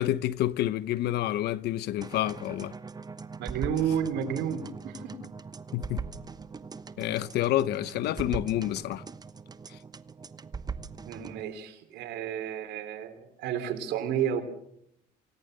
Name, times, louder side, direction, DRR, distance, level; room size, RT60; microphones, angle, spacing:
voice 1, 0.0-2.7 5.7-6.0 7.0-9.0, left 13 dB, 75° left, 1.0 m, -28 dB
sound 1, 2.0-11.4, right 5 dB, 25° right, 1.1 m, -41 dB
voice 2, 3.4-5.1 11.0-14.4, right 8 dB, 85° right, 3.8 m, -31 dB
28.0 x 18.5 x 6.8 m
cardioid pair, 110°, 17 cm